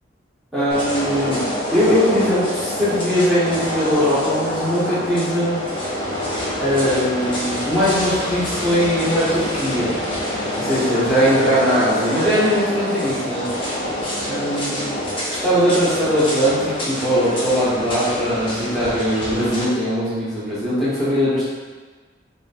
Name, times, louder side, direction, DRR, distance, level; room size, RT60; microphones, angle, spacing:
voice 1, 0.5-1.4 1.7-5.6 6.6-9.9 10.6-13.5 14.2-14.9 15.3-21.5, equal, ahead, -12 dB, 1.2 m, -20 dB
sound 1, 0.7-19.6, left 1 dB, 30° left, 0.8 m, -26 dB
3.1 x 2.5 x 4.2 m, 1.4 s
head